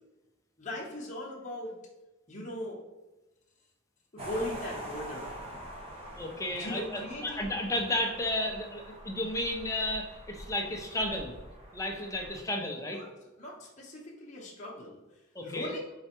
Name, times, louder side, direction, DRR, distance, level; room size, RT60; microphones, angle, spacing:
voice 1, 0.6-1.7 2.3-2.8 4.1-5.6 6.5-7.5 12.8-13.1 13.4-15.0 15.4-15.8, left 1 dB, 35° left, -5 dB, 0.9 m, -39 dB
sound 1, 4.2-12.4, right 1 dB, 30° right, 0.7 m, -45 dB
voice 2, 6.2-11.4 11.7-13.0 15.3-15.7, left 1 dB, 15° left, 2 dB, 0.5 m, -33 dB
4.7 x 3.2 x 2.9 m, 1.1 s
head